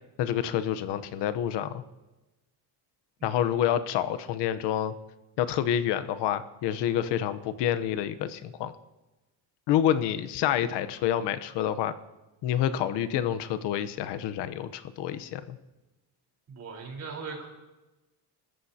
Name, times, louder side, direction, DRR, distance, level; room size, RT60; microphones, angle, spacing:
voice 1, 0.2-1.8 3.2-4.9 5.4-8.7 9.7-11.9 12.4-15.6, left 10 dB, 80° left, 12 dB, 1.1 m, -28 dB
voice 2, 3.2-3.5 16.5-17.5, right 4 dB, 40° right, 0 dB, 4.4 m, -40 dB
30.0 x 14.5 x 2.9 m, 1.1 s
cardioid pair, 165°, 41 cm